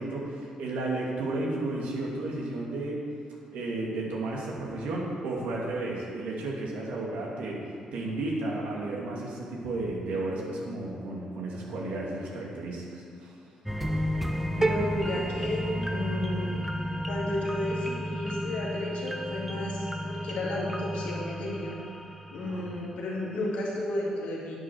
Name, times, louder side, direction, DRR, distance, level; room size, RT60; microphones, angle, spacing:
voice 1, 0.0-3.0 3.5-13.4 22.3-22.7, right 2 dB, 85° right, -3 dB, 2.6 m, -33 dB
sound 1, 13.7-23.0 23.4-23.5, equal, ahead, 1.0 m, -33 dB
voice 2, 14.6-16.6 17.1-21.8 22.3-24.6, left 1 dB, 85° left, -4 dB, 2.6 m, -33 dB
sound 2, 14.6-16.6, right 3 dB, 20° right, 0.8 m, -32 dB
9.4 x 8.7 x 6.3 m, 2.4 s
cardioid pair, 90°, 2 cm